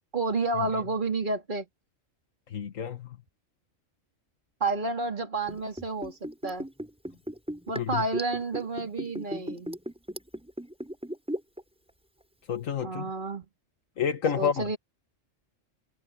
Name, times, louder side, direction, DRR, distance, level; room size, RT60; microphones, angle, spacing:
voice 1, 0.1-1.7 4.6-6.7 7.7-9.7 12.8-13.5 14.3-14.8, right 3 dB, 40° right, 3.0 m, -30 dB
voice 2, 2.5-3.1 7.8-8.0 12.5-13.1 14.0-14.8, left 6 dB, 90° left, 1.7 m, -29 dB
Liquid, 5.4-11.6 11.9-12.0, equal, 5° right, 5.7 m, -36 dB
omnidirectional pair, 1.3 m